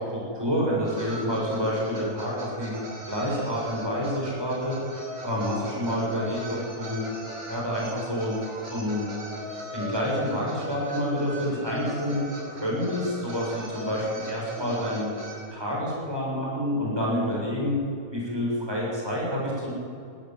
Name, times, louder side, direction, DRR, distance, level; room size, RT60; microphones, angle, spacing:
voice 1, 0.0-2.7 3.1-4.7 5.2-7.0 7.5-8.4 8.7-9.0 9.7-12.2 12.5-15.1 15.5-17.8 18.1-19.7, equal, 15° right, -5 dB, 7.7 m, -28 dB
sound 1, 0.8-15.4, equal, 65° right, 6.3 m, -39 dB
22.0 x 17.0 x 7.9 m, 2.6 s
omnidirectional pair, 1.7 m